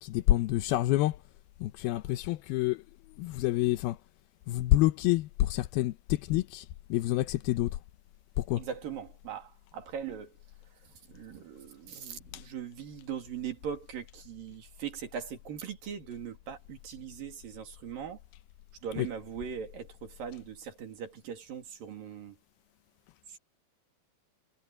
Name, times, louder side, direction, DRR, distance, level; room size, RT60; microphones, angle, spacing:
voice 1, 0.0-1.2 1.6-2.8 3.2-4.0 4.5-6.7 6.9-7.7 8.4-8.6 19.0-19.1, left 16 dB, 80° left, 2.5 m, -27 dB
voice 2, 8.5-10.4 10.8-18.2 18.8-22.4 23.3-23.4, right 8 dB, 65° right, 4.3 m, -40 dB
omnidirectional pair, 4.5 m